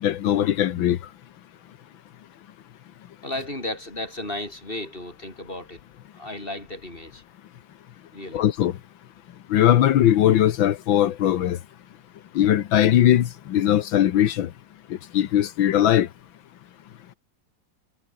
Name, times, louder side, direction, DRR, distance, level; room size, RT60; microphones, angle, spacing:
voice 1, 0.0-1.0 8.3-8.7 9.5-11.6 12.4-14.5 15.1-16.1, left 11 dB, 85° left, 1.8 m, -19 dB
voice 2, 3.2-5.8 6.1-7.2 8.1-8.5, left 1 dB, 25° left, 7.5 m, -34 dB
omnidirectional pair, 2.1 m